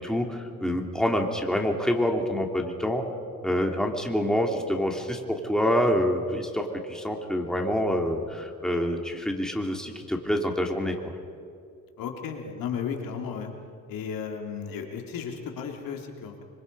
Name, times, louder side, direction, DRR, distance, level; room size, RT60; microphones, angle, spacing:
voice 1, 0.0-3.0 3.4-11.1, equal, ahead, 2 dB, 2.7 m, -27 dB
voice 2, 12.0-13.5 13.9-16.4, left 7 dB, 75° left, 2 dB, 3.2 m, -34 dB
25.5 x 25.0 x 5.4 m, 2.3 s
cardioid pair, 110°, 34 cm